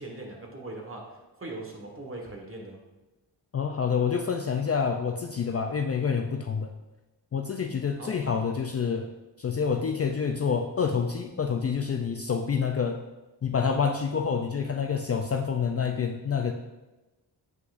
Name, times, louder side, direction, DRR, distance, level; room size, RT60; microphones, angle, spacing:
voice 1, 0.0-2.8 8.0-8.1, right 2 dB, 30° right, 0 dB, 1.5 m, -40 dB
voice 2, 3.5-6.7 7.3-9.1 9.4-13.0 13.4-16.5, left 6 dB, 35° left, 4 dB, 0.4 m, -27 dB
7.9 x 5.9 x 2.5 m, 1.1 s
cardioid pair, 80°, 42 cm